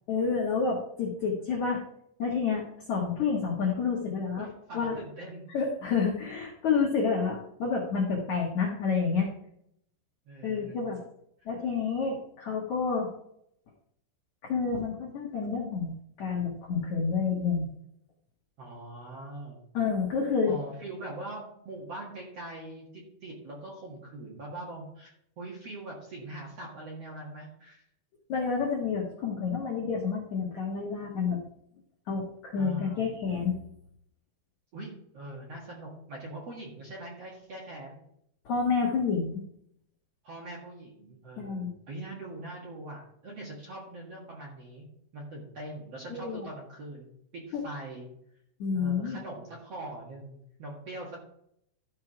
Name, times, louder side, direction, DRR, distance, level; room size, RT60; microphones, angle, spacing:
voice 1, 0.1-1.8 2.2-4.5 4.7-4.9 5.5-9.3 10.4-11.0 11.4-13.1 14.4-17.6 19.7-20.5 28.3-31.4 32.1-33.6 38.4-39.4 41.4-41.7 46.1-46.5 47.5-47.6 48.6-49.2, left 5 dB, 85° left, -2 dB, 1.6 m, -29 dB
voice 2, 4.4-5.7 10.2-10.8 18.6-19.6 20.5-27.8 32.6-33.0 34.7-38.0 40.2-44.8 45.1-47.1 47.3-48.1 48.7-51.2, right 1 dB, 75° right, -3 dB, 1.4 m, -42 dB
14.0 x 4.8 x 4.9 m, 0.72 s
omnidirectional pair, 5.9 m